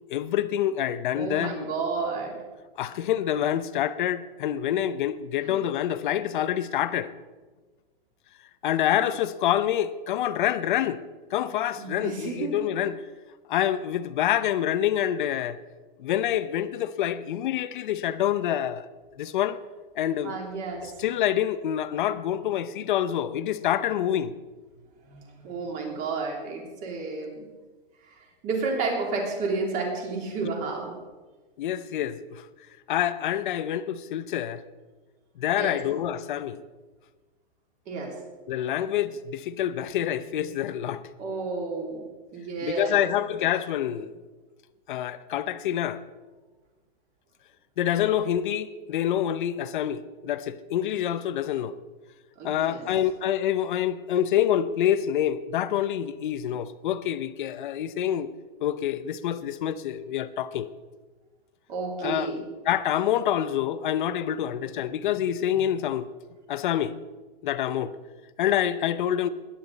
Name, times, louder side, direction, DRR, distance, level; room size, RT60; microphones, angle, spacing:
voice 1, 0.1-1.6 2.8-7.1 8.6-11.0 11.3-12.9 13.5-15.6 16.0-18.9 19.2-19.6 20.0-20.3 20.8-24.3 31.6-32.4 32.9-34.6 35.4-36.6 38.5-41.0 42.6-44.1 44.9-46.0 47.8-51.8 52.4-58.3 58.6-60.7 62.0-62.3 62.6-66.1 66.5-67.0 67.4-67.9 68.4-69.3, left 11 dB, 55° left, 0.8 m, -26 dB
voice 2, 1.1-2.4 5.4-5.6 11.8-12.5 20.2-20.9 25.1-27.5 28.1-28.2 28.4-30.9 35.5-35.7 37.9-38.1 41.2-42.0 42.3-43.0 52.4-52.9 61.7-62.4 65.5-65.6, right 4 dB, 25° right, 3.2 m, -31 dB
21.0 x 10.5 x 4.1 m
hypercardioid pair, 165°, 30 cm